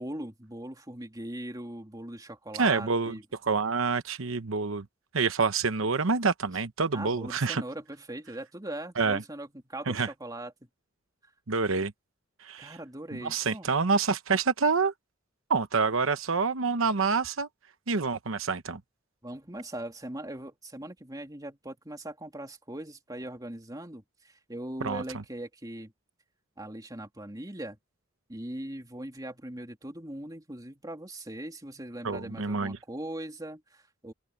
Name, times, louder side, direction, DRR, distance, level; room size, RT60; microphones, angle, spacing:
voice 1, 0.0-3.2 6.9-10.5 12.6-13.7 19.2-25.9 26.6-27.8 28.3-34.1, right 1 dB, 20° right, 2.8 m, -40 dB
voice 2, 2.6-3.2 3.4-4.8 5.1-7.6 9.0-9.2 9.9-10.1 11.5-11.9 12.4-12.8 13.2-14.9 15.5-17.5 17.9-18.8 24.8-25.2 32.0-32.8, right 4 dB, 90° right, 1.0 m, -27 dB
open air
head